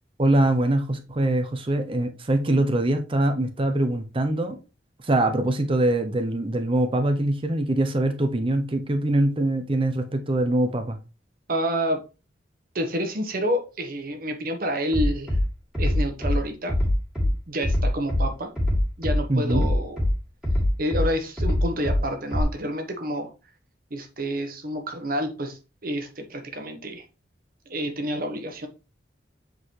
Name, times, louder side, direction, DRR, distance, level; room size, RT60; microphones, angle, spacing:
voice 1, 0.2-4.6 5.0-11.0 19.3-19.7, right 1 dB, 30° right, 0.7 m, -23 dB
voice 2, 11.5-12.0 12.7-15.4 15.8-16.7 17.2-18.5 19.0-20.0 20.8-23.3 23.9-27.0 27.7-28.7, equal, 55° right, 1.1 m, -29 dB
Bass drum, 14.9-15.4 15.7-16.4 16.7-17.3 17.6-18.2 18.6-19.2 19.5-20.1 20.4-21.0 21.4-22.0 22.3-22.4, left 1 dB, 5° right, 2.5 m, -23 dB
7.7 x 3.9 x 3.2 m
head